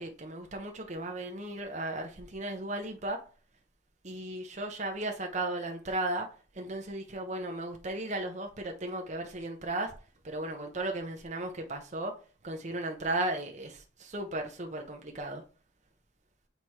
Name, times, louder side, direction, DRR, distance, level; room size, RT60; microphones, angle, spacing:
voice 1, 0.0-3.2 4.0-6.3 6.5-9.9 10.2-12.1 12.4-15.4, right 2 dB, 40° right, 0.8 m, -35 dB
8.2 x 2.9 x 4.6 m
head